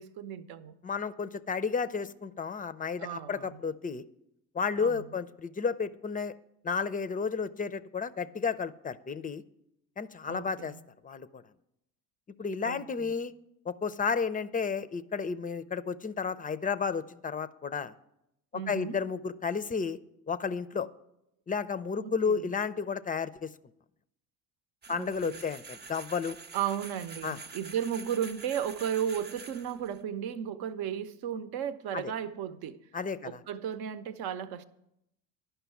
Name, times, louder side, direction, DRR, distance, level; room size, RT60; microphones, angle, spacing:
voice 1, 0.0-0.7 3.0-3.6 4.8-5.1 10.3-10.8 12.6-13.1 18.5-19.0 22.0-22.5 24.9-25.4 26.5-32.8 33.2-34.6, right 9 dB, 65° right, 0.8 m, -35 dB
voice 2, 0.8-4.0 4.5-6.3 6.6-9.4 10.0-10.7 11.0-11.4 12.4-13.3 13.7-17.9 18.7-20.0 20.3-20.9 21.5-23.5 24.9-26.4 27.2-27.4 31.9-32.0 32.9-33.4, left 5 dB, 20° left, 0.4 m, -32 dB
sound 1, 24.8-30.0, right 4 dB, 25° right, 0.6 m, -47 dB
11.0 x 5.6 x 7.0 m
supercardioid pair, 70°, 40 cm